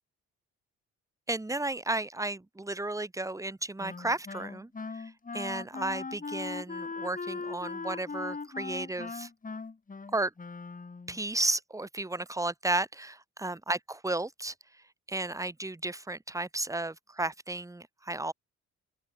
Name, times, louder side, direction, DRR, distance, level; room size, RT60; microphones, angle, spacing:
voice 1, 1.3-4.7 5.3-9.3 10.1-10.3 11.1-14.5 15.1-18.3, right 2 dB, 10° right, 1.7 m, -33 dB
Wind instrument woodwind instrument, 3.8-11.2, left 4 dB, 25° left, 4.5 m, -39 dB
open air
cardioid pair, 90°, 30 cm